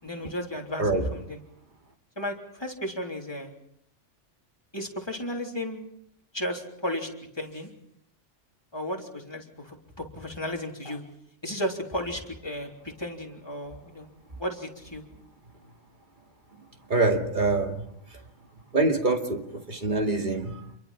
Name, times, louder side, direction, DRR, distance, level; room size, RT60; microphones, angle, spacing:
voice 1, 0.0-1.4 2.2-3.5 4.7-5.9 6.3-7.1 7.3-7.7 8.7-11.0 11.4-14.1 14.4-15.0, equal, 20° left, 3.6 m, -34 dB
voice 2, 16.9-17.8 18.7-19.4 19.7-20.6, right 2 dB, 40° right, 2.6 m, -24 dB
28.5 x 22.5 x 5.9 m
omnidirectional pair, 1.3 m